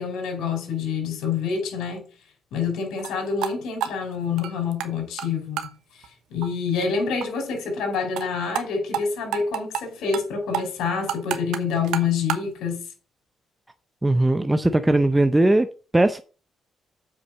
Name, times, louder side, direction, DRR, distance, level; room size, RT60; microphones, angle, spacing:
voice 1, 0.0-2.0 2.5-5.7 6.3-12.8, left 5 dB, 85° left, 4.2 m, -27 dB
sound 1, 3.0-3.1 3.4-3.5 3.8-4.9 5.2-5.3 5.6-5.7 6.0-6.1 6.4-6.5 6.8-6.9 7.2-7.3 7.5-7.6 7.9-8.3 8.5-8.6 8.9-9.0 9.3-9.8 10.1-10.3 10.5-12.5, right 10 dB, 90° right, 1.1 m, -29 dB
voice 2, 14.0-15.7 15.9-16.2, right 2 dB, 10° right, 0.7 m, -19 dB
7.7 x 6.0 x 6.3 m
cardioid pair, 90°, 0 cm